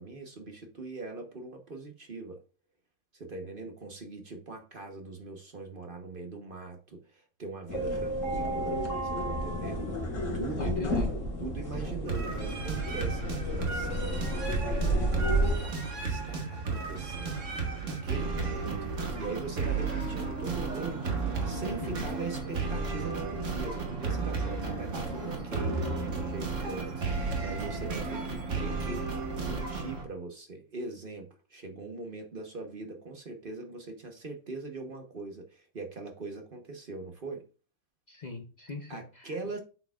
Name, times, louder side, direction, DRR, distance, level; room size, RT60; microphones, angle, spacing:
voice 1, 0.0-2.4 3.1-9.9 10.3-10.8 11.4-17.5 17.8-29.0 29.4-37.4 38.9-39.6, right 3 dB, 40° right, 1.2 m, -41 dB
sound 1, 7.7-15.6, right 1 dB, 65° left, 2.1 m, -31 dB
voice 2, 10.6-11.1 21.8-22.1 38.1-39.3, left 3 dB, 40° left, 0.8 m, -41 dB
sound 2, 12.1-30.0, right 4 dB, 60° right, 1.8 m, -33 dB
7.8 x 6.6 x 2.4 m
omnidirectional pair, 1.5 m